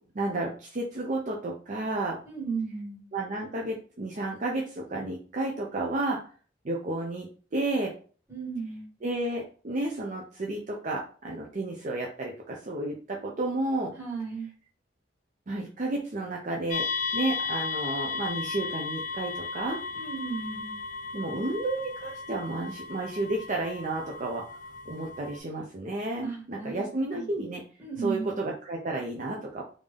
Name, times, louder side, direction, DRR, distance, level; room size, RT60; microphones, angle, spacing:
voice 1, 0.1-2.2 3.1-6.2 6.6-7.3 7.5-7.9 9.0-13.9 15.5-16.9 17.1-19.8 21.1-24.4 24.9-27.6 28.0-29.6, right 2 dB, 45° right, -1 dB, 0.5 m, -31 dB
voice 2, 2.2-3.0 8.3-8.9 14.0-14.5 19.9-20.8 26.2-27.3 27.8-28.4, right 5 dB, 10° right, -4 dB, 1.5 m, -35 dB
sound 1, 16.7-25.4, left 4 dB, 45° left, 0.4 m, -35 dB
3.5 x 2.6 x 3.3 m, 0.40 s
head